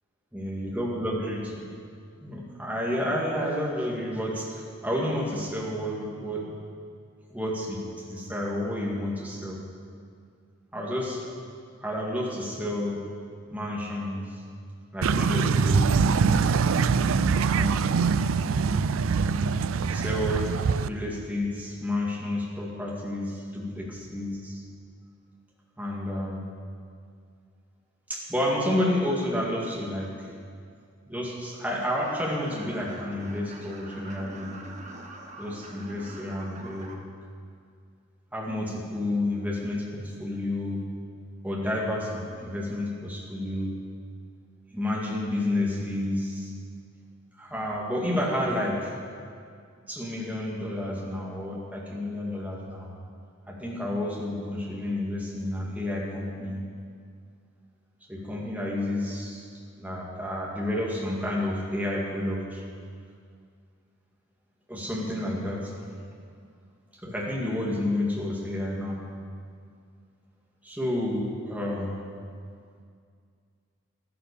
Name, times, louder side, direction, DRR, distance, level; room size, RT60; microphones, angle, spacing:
voice 1, 0.3-1.6 2.2-6.5 7.3-9.6 10.7-11.2 11.8-13.0 13.5-14.3 14.9-16.1 17.5-18.0 19.9-20.5 20.8-24.6 25.8-26.5 28.1-30.3 31.1-34.5 35.4-36.9 38.3-40.8 41.4-43.7 44.7-46.5 47.4-48.9 49.9-52.9 53.5-56.6 58.1-59.5 59.8-62.6 64.7-65.7 67.0-69.0 70.6-71.9, left 1 dB, 5° right, -4 dB, 2.2 m, -30 dB
sound 1, 15.0-20.9, right 5 dB, 75° right, 0.4 m, -23 dB
sound 2, 32.0-36.9, right 1 dB, 35° right, 1.2 m, -44 dB
12.5 x 10.0 x 6.8 m, 2.2 s
head